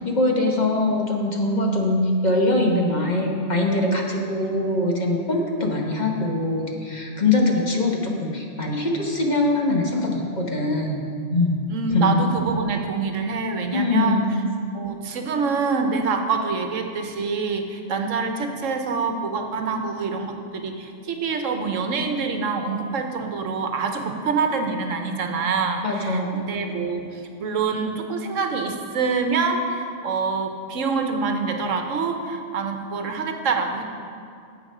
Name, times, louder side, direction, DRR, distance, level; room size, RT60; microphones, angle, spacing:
voice 1, 0.0-11.0 11.3-11.7 11.9-12.2 13.7-14.3 25.8-26.3, left 2 dB, 35° left, 0 dB, 1.1 m, -22 dB
voice 2, 11.7-14.4 14.7-33.8, right 4 dB, 85° right, 5 dB, 1.3 m, -26 dB
11.0 x 7.6 x 5.4 m, 2.4 s
omnidirectional pair, 1.3 m